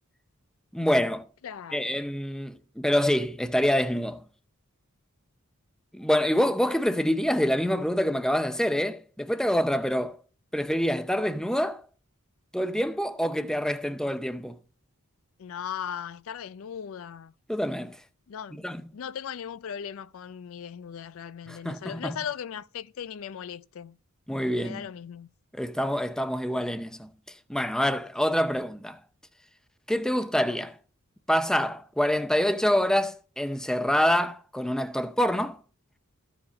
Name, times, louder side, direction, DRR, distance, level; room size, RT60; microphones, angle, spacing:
voice 1, 0.7-1.3 1.7-4.2 5.9-10.2 10.5-11.8 12.5-14.6 17.5-18.0 18.5-18.8 21.5-22.2 24.3-24.9 25.5-29.0 29.9-30.8 31.3-35.6, equal, 5° left, 0.5 m, -26 dB
voice 2, 1.4-2.0 15.4-17.3 18.3-18.6 18.9-24.0 24.4-25.3, left 8 dB, 70° left, 0.4 m, -38 dB
14.5 x 5.0 x 5.0 m
head